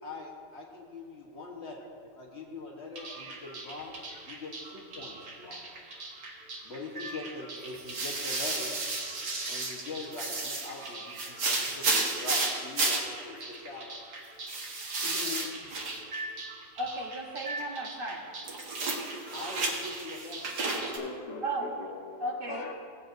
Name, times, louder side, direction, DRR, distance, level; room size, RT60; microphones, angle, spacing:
voice 1, 0.0-1.8 2.2-5.7 6.6-8.7 9.5-13.9 19.3-20.5, left 2 dB, 40° left, -2 dB, 1.3 m, -42 dB
sound 1, 3.0-21.0, right 3 dB, 65° right, 1.9 m, -34 dB
voice 2, 15.0-15.6 21.0-22.7, left 5 dB, 70° left, 1 dB, 1.6 m, -40 dB
voice 3, 16.8-18.2 21.4-21.6 22.2-22.6, right 2 dB, 40° right, 1 dB, 1.0 m, -34 dB
17.0 x 8.0 x 2.6 m, 2.2 s
omnidirectional pair, 1.9 m